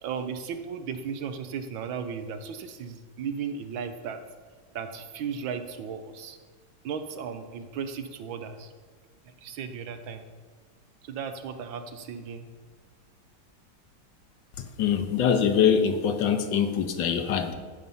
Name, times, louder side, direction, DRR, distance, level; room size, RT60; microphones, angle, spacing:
voice 1, 0.0-4.2 4.7-6.4 6.8-8.7 9.2-10.3 11.0-12.5, right 6 dB, 75° right, 8 dB, 1.4 m, -35 dB
voice 2, 14.6-17.5, left 7 dB, 65° left, 8 dB, 1.4 m, -24 dB
15.0 x 5.5 x 5.5 m, 1.5 s
omnidirectional pair, 2.3 m